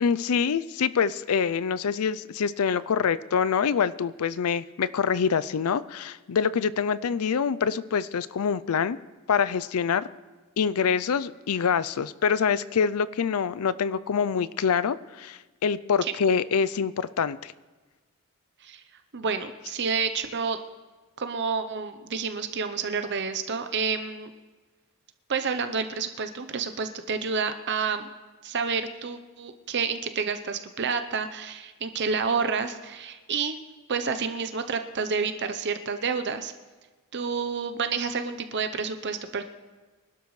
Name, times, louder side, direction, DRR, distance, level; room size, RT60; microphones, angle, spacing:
voice 1, 0.0-9.0 9.3-10.1 10.6-17.5, left 6 dB, 80° left, 16 dB, 0.5 m, -25 dB
voice 2, 19.1-20.6 21.2-24.3 25.3-28.1 28.4-33.6 33.9-36.5 37.1-39.4, right 5 dB, 50° right, 9 dB, 0.7 m, -29 dB
24.0 x 12.0 x 3.2 m, 1.3 s
head